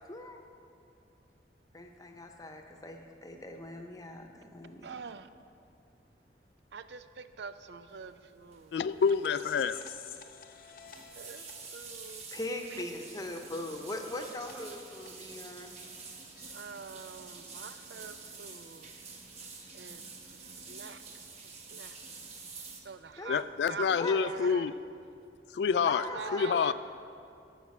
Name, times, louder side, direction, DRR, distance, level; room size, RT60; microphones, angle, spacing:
voice 1, 1.7-5.0 12.3-15.8 23.2-23.3 23.9-24.3 25.8-26.7, left 1 dB, 20° left, 0.8 m, -40 dB
voice 2, 4.8-5.3 6.7-8.7 9.6-9.7 11.2-11.5 11.7-12.2 16.5-18.9 19.7-20.0 20.4-21.0 21.7-22.0 22.8-23.4 23.7-24.6 26.1-26.7, right 5 dB, 75° right, 0.5 m, -44 dB
sound 1, 8.5-8.7 9.0-9.3 9.6-9.7 10.6-22.8, right 4 dB, 40° right, 1.0 m, -48 dB
voice 3, 8.7-9.8 23.3-24.7 25.5-26.0 26.3-26.7, left 6 dB, 70° left, 0.3 m, -27 dB
sound 2, 9.0-16.6 17.0-18.6, left 7 dB, 55° left, 0.7 m, -52 dB
11.5 x 6.7 x 6.0 m
head